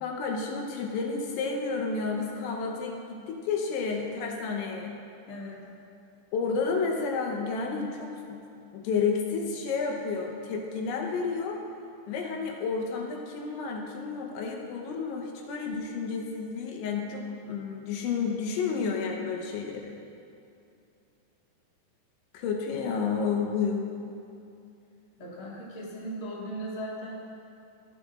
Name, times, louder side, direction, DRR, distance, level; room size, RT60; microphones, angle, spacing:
voice 1, 0.0-4.9 6.3-8.4 8.7-11.6 12.1-19.9 22.3-23.9, left 5 dB, 80° left, 1 dB, 3.2 m, -31 dB
voice 2, 5.3-5.6 19.2-19.3 25.2-27.2, right 1 dB, 35° left, -7 dB, 1.6 m, -38 dB
18.0 x 11.0 x 2.4 m, 2.6 s
omnidirectional pair, 5.4 m